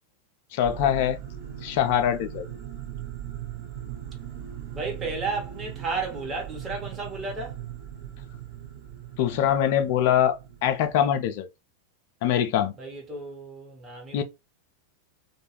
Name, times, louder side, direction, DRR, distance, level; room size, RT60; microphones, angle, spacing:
voice 1, 0.5-1.2 1.6-2.5 9.2-11.5 12.2-12.7 14.1-14.2, left 10 dB, 50° left, 0.4 m, -23 dB
sound 1, 0.6-11.1, right 10 dB, 45° right, 0.7 m, -39 dB
voice 2, 4.7-7.6 12.8-14.2, right 3 dB, 20° right, 1.0 m, -33 dB
2.3 x 2.2 x 2.9 m
figure-of-eight pair, 90°, 0 cm